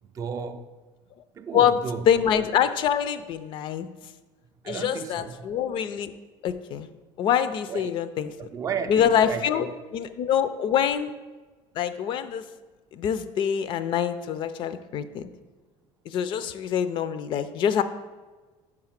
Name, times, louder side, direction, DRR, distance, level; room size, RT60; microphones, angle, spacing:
voice 1, 0.0-0.7 1.3-2.1 4.6-5.5 7.7-8.0 8.4-9.7, right 6 dB, 30° right, 0.3 m, -34 dB
voice 2, 2.1-3.9 4.7-6.1 6.4-6.9 7.2-8.3 8.9-11.1 11.8-12.4 12.9-15.3 16.1-17.8, left 9 dB, 50° left, 0.4 m, -25 dB
5.0 x 4.8 x 5.8 m
cardioid pair, 130°, 11 cm